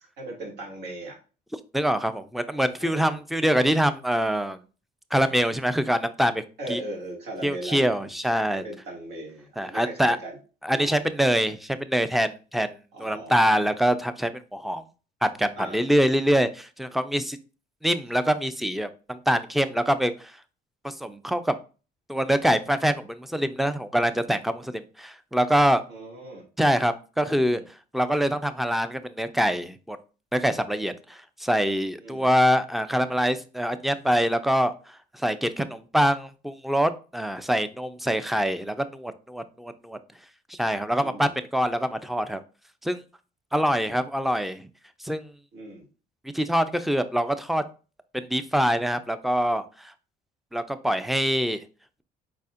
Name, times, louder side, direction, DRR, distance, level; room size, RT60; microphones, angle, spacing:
voice 1, 0.2-1.2 2.8-3.2 6.6-8.1 8.5-10.4 10.7-11.1 12.9-13.8 15.6-15.9 25.9-26.4 27.2-27.6 32.0-32.3 41.0-41.3 45.5-45.8, right 1 dB, 75° right, -2 dB, 2.2 m, -38 dB
voice 2, 1.7-4.6 5.1-6.4 6.7-6.8 7.4-8.6 9.6-10.2 10.6-14.8 15.2-17.4 17.8-20.3 20.8-21.6 22.1-25.8 26.6-27.6 27.9-30.0 30.3-34.7 35.2-40.0 40.5-42.4 42.8-43.0 43.5-44.7 45.0-45.3 46.3-47.6 48.1-49.9 50.5-51.6, equal, ahead, 12 dB, 0.4 m, -24 dB
4.8 x 4.2 x 2.4 m, 0.34 s
cardioid pair, 110°, 17 cm